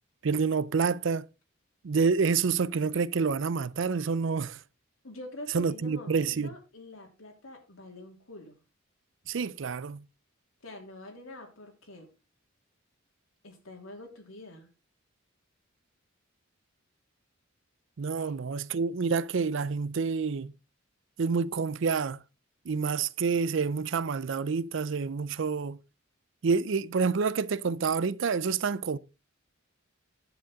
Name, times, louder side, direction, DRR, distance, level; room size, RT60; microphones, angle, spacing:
voice 1, 0.2-1.3 1.8-4.6 5.5-6.5 9.3-10.0 18.0-20.5 21.2-22.2 22.7-25.8 26.4-29.0, right 5 dB, 65° right, 0.5 m, -28 dB
voice 2, 5.0-8.6 10.6-12.1 13.4-14.7 18.2-18.3, left 2 dB, 80° left, 3.1 m, -46 dB
10.5 x 8.6 x 3.6 m
head